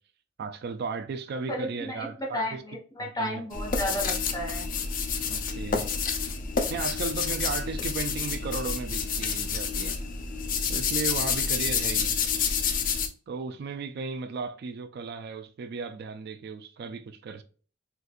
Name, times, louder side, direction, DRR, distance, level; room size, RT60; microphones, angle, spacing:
voice 1, 0.4-2.6 3.0-3.4 5.3-5.8 6.7-10.0 10.7-12.2 13.3-17.4, right 4 dB, 55° right, 0.3 m, -35 dB
voice 2, 1.5-4.7, equal, 20° left, 1.2 m, -33 dB
sound 1, 3.5-13.1, left 6 dB, 45° left, 0.5 m, -29 dB
3.9 x 2.5 x 2.4 m
head